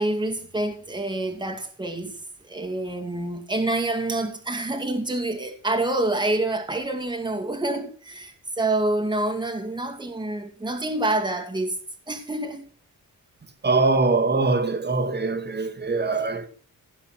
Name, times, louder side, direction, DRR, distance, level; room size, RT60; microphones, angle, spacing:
voice 1, 0.0-11.8 12.1-12.7, right 2 dB, 15° right, 2.4 m, -27 dB
voice 2, 13.6-16.5, right 3 dB, 30° right, 2.2 m, -22 dB
16.5 x 8.1 x 7.7 m
wide cardioid pair, 150°, 34 cm